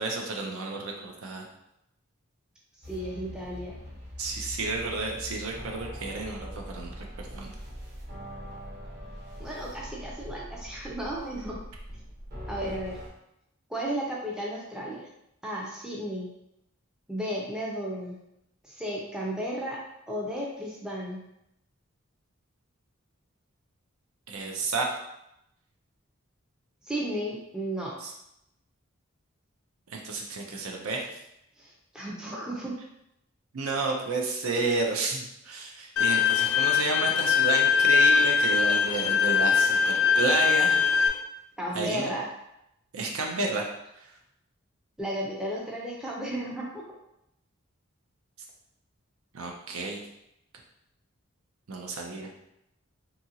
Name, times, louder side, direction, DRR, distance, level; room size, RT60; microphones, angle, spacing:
voice 1, 0.0-1.5 4.2-7.0 7.3-7.5 24.3-25.0 28.0-28.1 29.9-31.1 33.5-40.8 41.7-42.1 42.9-43.7 43.9-44.1 49.3-50.0 51.7-52.3, right 3 dB, 85° right, 1 dB, 0.5 m, -31 dB
voice 2, 2.8-3.8 9.4-11.6 12.5-13.0 13.7-15.1 15.4-16.3 17.1-18.2 18.6-21.2 26.8-28.0 31.6-32.8 36.3-36.4 41.6-42.3 45.0-46.8, right 1 dB, 5° right, -4 dB, 0.4 m, -34 dB
sound 1, 2.8-13.1, equal, 45° right, 1.0 m, -42 dB
Bowed string instrument, 36.0-41.1, left 7 dB, 75° left, 0.4 m, -22 dB
2.8 x 2.4 x 2.8 m, 0.82 s
head